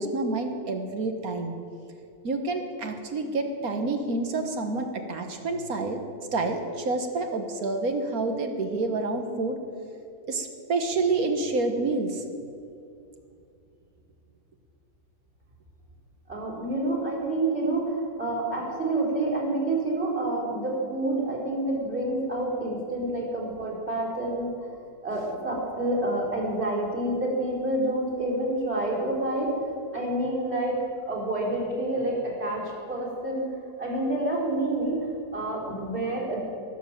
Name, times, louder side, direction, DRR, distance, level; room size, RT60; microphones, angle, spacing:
voice 1, 0.0-1.5 2.2-6.0 6.3-9.6 10.3-12.2, right 3 dB, 60° right, 5 dB, 1.8 m, -28 dB
voice 2, 16.3-24.5 25.0-29.5 29.9-30.7 31.1-33.5 33.8-35.0 35.3-36.4, right 1 dB, 40° right, -3 dB, 4.2 m, -28 dB
21.5 x 7.6 x 7.6 m, 2.5 s
omnidirectional pair, 1.7 m